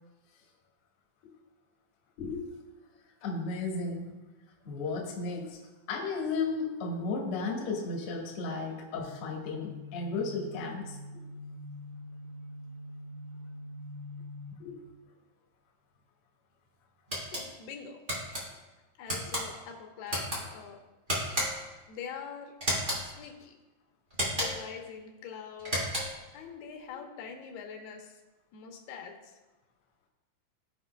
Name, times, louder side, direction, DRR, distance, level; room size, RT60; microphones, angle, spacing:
voice 1, 3.2-4.1 4.6-5.6 5.9-11.0 14.6-14.9, left 3 dB, 60° left, -2 dB, 1.5 m, -34 dB
sound 1, 9.0-14.5, left 2 dB, 85° right, 1.4 m, -44 dB
sound 2, 17.1-17.4 18.1-18.4 19.1-19.4 20.1-20.4 21.1-21.7 22.6-23.0 24.1-24.7 25.6-26.2, equal, 55° right, 0.5 m, -32 dB
voice 2, 17.2-18.0 19.0-20.8 21.9-22.5 23.0-23.5 24.3-25.9 26.3-28.2 28.5-29.4, left 7 dB, 85° left, 2 dB, 2.8 m, -44 dB
15.0 x 5.1 x 2.2 m, 1.1 s
omnidirectional pair, 4.5 m